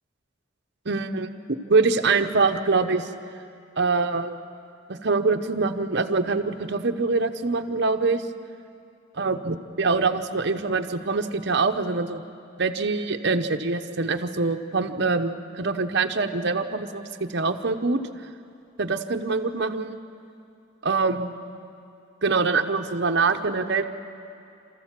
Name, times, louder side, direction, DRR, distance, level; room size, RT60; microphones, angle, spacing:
voice 1, 0.8-1.3 1.7-3.1 3.8-4.4 4.9-8.2 9.1-12.2 12.6-18.0 18.8-20.0 20.8-21.4 22.2-23.8, right 4 dB, 60° right, 6 dB, 1.0 m, -24 dB
28.5 x 14.0 x 7.5 m, 2.6 s
head